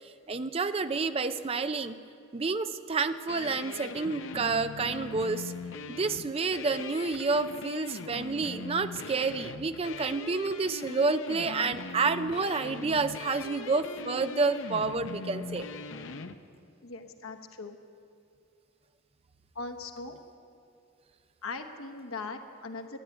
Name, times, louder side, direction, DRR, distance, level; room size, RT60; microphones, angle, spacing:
voice 1, 0.3-2.0 2.3-5.5 5.9-15.7, right 4 dB, 30° right, 10 dB, 0.4 m, -29 dB
sound 1, 3.3-16.3, left 3 dB, 65° left, 0.7 m, -41 dB
voice 2, 16.8-17.8 19.5-20.2 21.4-23.0, left 3 dB, 90° left, 6 dB, 1.2 m, -39 dB
13.0 x 11.0 x 9.2 m, 2.6 s
head